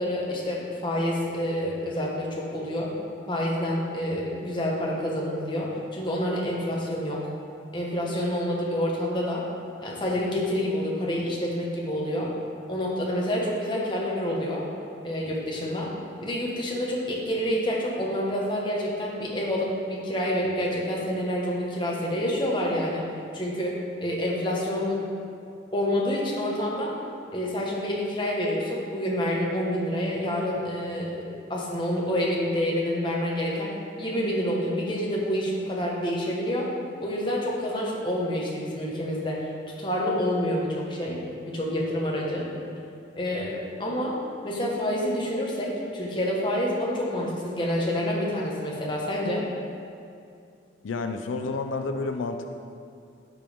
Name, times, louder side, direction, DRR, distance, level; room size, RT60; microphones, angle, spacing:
voice 1, 0.0-2.9 3.3-7.3 7.7-9.4 9.8-12.3 12.7-14.7 15.0-15.9 16.2-23.1 23.3-25.0 25.7-26.9 27.3-36.7 37.0-39.5 39.8-41.2 41.4-42.5 43.2-44.2 44.4-49.4, equal, 25° left, -4 dB, 1.3 m, -28 dB
voice 2, 50.8-52.5, left 3 dB, 90° left, 6 dB, 0.4 m, -30 dB
13.5 x 4.6 x 3.6 m, 2.4 s
head